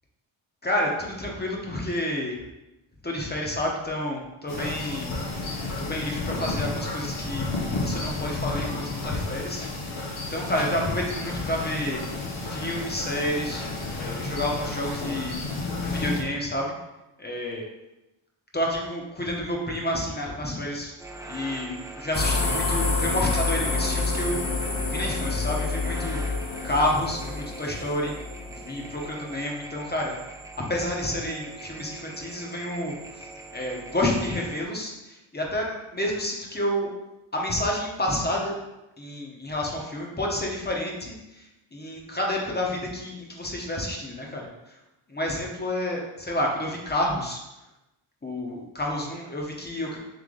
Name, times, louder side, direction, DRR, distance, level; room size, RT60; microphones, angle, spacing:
voice 1, 0.6-2.4 3.0-5.1 5.8-7.5 7.8-9.6 9.9-10.0 10.3-12.0 12.4-13.6 14.0-15.4 15.8-16.7 17.2-17.6 18.5-20.9 21.3-26.2 26.6-28.1 28.5-30.1 30.5-33.3 33.5-36.9 37.3-38.6 39.0-44.8 45.1-47.4 48.2-50.0, left 1 dB, 20° left, -1 dB, 1.0 m, -29 dB
sound 1, 4.5-16.2, left 2 dB, 80° left, 0.9 m, -31 dB
sound 2, 21.0-34.6, right 2 dB, 5° right, 0.5 m, -42 dB
sound 3, 22.1-29.0, left 3 dB, 60° left, 1.2 m, -28 dB
3.3 x 3.2 x 3.7 m, 0.96 s
cardioid pair, 60°, 49 cm